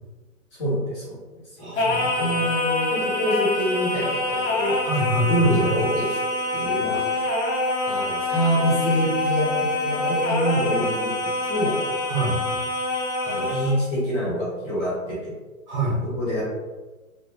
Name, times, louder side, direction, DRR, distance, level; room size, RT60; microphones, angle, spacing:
voice 1, 0.6-1.2 1.6-1.7 2.2-4.8 5.3-6.2 6.5-7.0 7.8-11.8 13.2-15.3 16.2-16.4, equal, 20° left, -8 dB, 0.7 m, -25 dB
voice 2, 1.6-2.2 4.8-5.7 12.1-12.4 15.7-16.0, equal, 35° right, -4 dB, 0.7 m, -26 dB
Singing, 1.8-13.8, left 2 dB, 55° left, 0.7 m, -25 dB
2.1 x 2.0 x 3.3 m, 1.2 s
hypercardioid pair, 135°, 41 cm